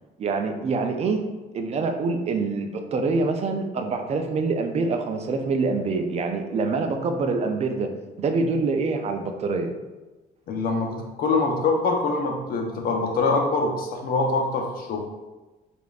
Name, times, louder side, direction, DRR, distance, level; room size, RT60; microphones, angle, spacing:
voice 1, 0.2-1.3 1.5-7.9 8.2-9.7, right 4 dB, 40° right, 5 dB, 0.4 m, -25 dB
voice 2, 10.5-15.0, left 3 dB, 60° left, 2 dB, 0.7 m, -24 dB
5.0 x 2.5 x 2.4 m, 1.1 s
cardioid pair, 110°, 17 cm